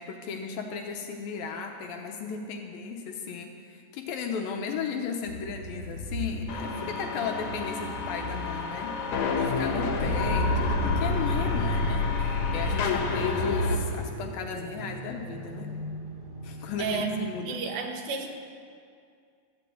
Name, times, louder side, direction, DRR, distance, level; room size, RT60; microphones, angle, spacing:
voice 1, 0.0-9.0 9.4-15.7 16.4-17.6, left 5 dB, 75° left, 3 dB, 2.3 m, -35 dB
sound 1, 5.2-17.4, left 1 dB, 40° right, 1.7 m, -40 dB
sound 2, 6.5-13.8, left 3 dB, 60° left, 2.5 m, -28 dB
voice 2, 16.8-18.3, right 5 dB, 85° right, 3 dB, 3.4 m, -32 dB
13.5 x 8.2 x 9.1 m, 2.3 s
omnidirectional pair, 4.9 m